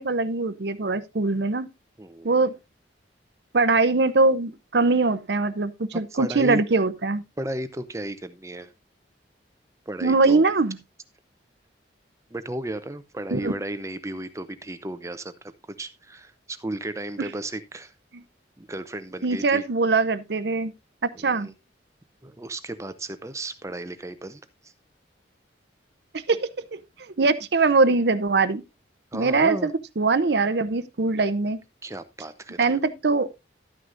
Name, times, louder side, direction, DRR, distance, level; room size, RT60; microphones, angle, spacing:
voice 1, 0.0-1.7 2.2-2.5 3.5-7.2 10.0-10.8 13.3-13.5 19.2-20.7 21.0-21.5 26.1-28.6 29.1-31.6 32.6-33.3, right 3 dB, 60° right, 0.7 m, -22 dB
voice 2, 2.0-2.5 6.1-6.6 7.4-8.7 9.9-10.4 12.3-15.5 15.8-17.9 18.6-19.6 21.1-21.5 22.2-24.7 29.1-29.7 31.8-32.8, right 1 dB, 15° right, 0.6 m, -34 dB
12.5 x 9.6 x 2.5 m
head